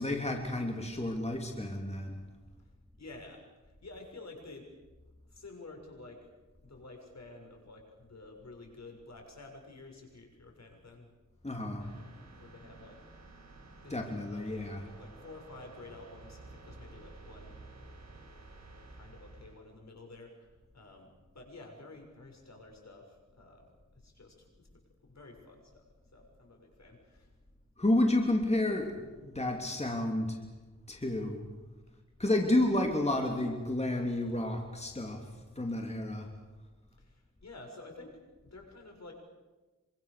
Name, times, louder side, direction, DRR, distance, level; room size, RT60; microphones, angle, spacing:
voice 1, 0.0-2.2 11.4-11.9 13.9-14.9 27.8-30.4 30.9-31.5 32.2-36.3, left 1 dB, 20° left, 2 dB, 3.2 m, -31 dB
voice 2, 3.0-4.7 5.3-6.3 6.6-11.1 12.4-13.1 13.8-14.5 15.0-17.6 18.9-24.7 25.0-25.9 26.1-27.3 37.0-39.1, left 2 dB, 65° left, 2 dB, 6.8 m, -51 dB
sound 1, 11.8-19.6, right 2 dB, 65° right, 6.0 m, -52 dB
26.5 x 24.5 x 6.9 m, 1.2 s
wide cardioid pair, 65°, 29 cm